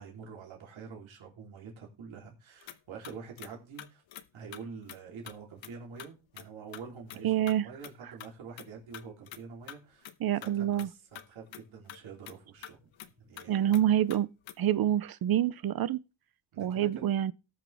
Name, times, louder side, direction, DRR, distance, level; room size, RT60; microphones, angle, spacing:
voice 1, 0.0-4.0 4.3-10.1 10.4-12.8 13.2-13.9 16.5-17.0, right 5 dB, 75° right, 3.3 m, -46 dB
sound 1, 2.6-2.8 3.0-3.5 3.8-4.3 4.5-4.6 4.9-5.0 5.3-5.4 5.6-6.1 6.4-6.5 6.7-6.8 7.1-7.2 7.5-7.6 7.8-8.3 8.6-9.4 9.7-9.8 10.0-10.1 10.4-11.3 11.5-11.6 11.9-12.0 12.2-12.4 12.6-13.1 13.3-13.5 13.7-14.5, left 11 dB, 75° left, 1.0 m, -46 dB
voice 2, 7.2-7.7 10.2-10.9 13.5-14.3 14.6-16.0 16.6-17.3, right 11 dB, 50° right, 0.5 m, -27 dB
18.5 x 6.2 x 3.3 m
cardioid pair, 110°, 47 cm